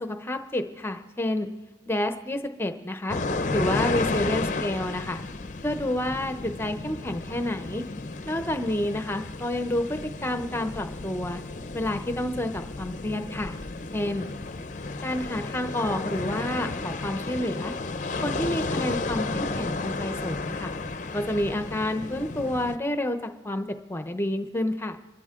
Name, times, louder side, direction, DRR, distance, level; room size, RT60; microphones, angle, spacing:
voice 1, 0.0-1.5 1.9-3.2 3.5-5.2 5.6-7.8 8.3-11.4 11.7-13.6 13.9-14.3 15.0-17.7 18.2-20.7 21.1-25.0, left 1 dB, 10° left, 7 dB, 0.8 m, -29 dB
sound 1, 3.1-22.8, left 3 dB, 40° left, 0.6 m, -33 dB
26.5 x 13.0 x 3.7 m, 1.1 s
head